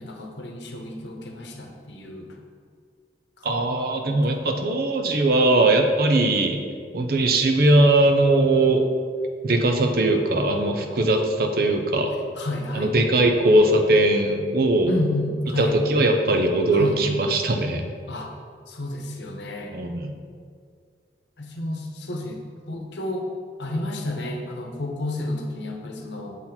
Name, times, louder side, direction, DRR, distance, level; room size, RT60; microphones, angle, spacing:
voice 1, 0.0-2.4 3.4-3.5 4.1-4.2 12.4-12.9 14.9-15.8 16.7-17.0 18.1-18.3 18.7-19.7 21.4-22.4 22.7-23.3 23.6-26.4, left 1 dB, 85° left, 2 dB, 0.9 m, -31 dB
voice 2, 3.4-6.6 6.9-8.8 9.4-12.1 12.7-14.9 15.6-17.8 19.7-20.1, right 2 dB, 55° right, 4 dB, 0.6 m, -20 dB
7.1 x 4.0 x 4.3 m, 2.1 s
head